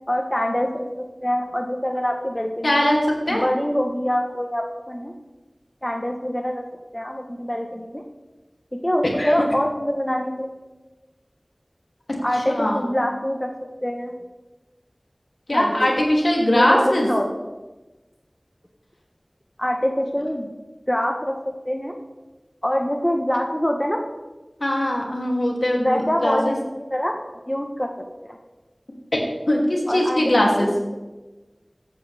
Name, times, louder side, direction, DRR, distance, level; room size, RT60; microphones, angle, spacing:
voice 1, 0.0-2.8 3.3-5.1 5.8-6.6 6.9-8.0 8.7-10.5 12.2-13.5 13.8-14.1 15.5-15.9 16.5-17.3 19.6-20.5 20.9-22.0 22.6-24.0 25.8-27.1 27.5-27.9 28.2-28.4 29.9-30.2 30.5-30.9, equal, 15° left, 2 dB, 1.0 m, -25 dB
voice 2, 2.6-3.0 3.3-3.4 9.2-9.3 12.5-12.8 15.5-17.1 24.6-26.5 29.1-29.2 29.5-30.7, left 1 dB, 65° left, -1 dB, 2.6 m, -20 dB
14.5 x 9.0 x 3.4 m, 1.2 s
wide cardioid pair, 40°, 0 cm